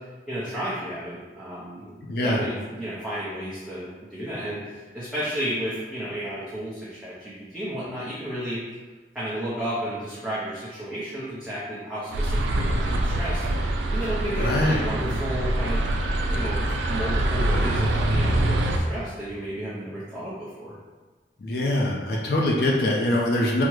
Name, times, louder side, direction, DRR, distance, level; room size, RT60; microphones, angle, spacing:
voice 1, 0.3-1.9 2.2-8.6 9.1-13.4 13.9-15.9 16.3-16.6 16.9-20.8, equal, 5° right, -11 dB, 0.5 m, -32 dB
voice 2, 2.1-2.4 14.4-14.8 21.4-23.6, left 1 dB, 60° left, -2 dB, 0.4 m, -23 dB
sound 1, 12.1-18.8, right 1 dB, 80° right, 0.4 m, -24 dB
3.5 x 2.0 x 3.0 m, 1.3 s
head